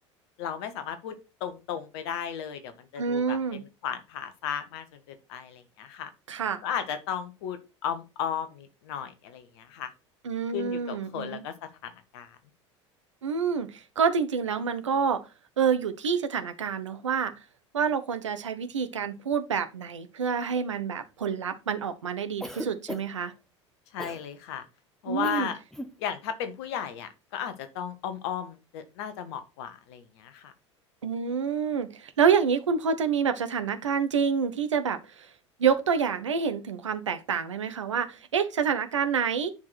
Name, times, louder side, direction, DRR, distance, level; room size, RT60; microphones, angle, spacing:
voice 1, 0.4-1.1 1.4-6.1 6.6-9.9 10.5-11.5 11.8-12.4 23.9-24.7 25.0-25.6 26.0-30.5, left 8 dB, 60° left, 1.6 m, -35 dB
voice 2, 3.0-3.6 6.3-6.6 10.2-11.4 13.2-15.2 15.6-17.3 17.7-23.3 25.1-25.5 31.0-35.3 35.6-39.5, right 6 dB, 75° right, 1.2 m, -27 dB
Cough, 22.4-23.3 24.0-24.2 25.2-25.5 25.7-26.0, equal, 5° left, 1.1 m, -37 dB
10.0 x 4.9 x 4.3 m
figure-of-eight pair, 70°, 15 cm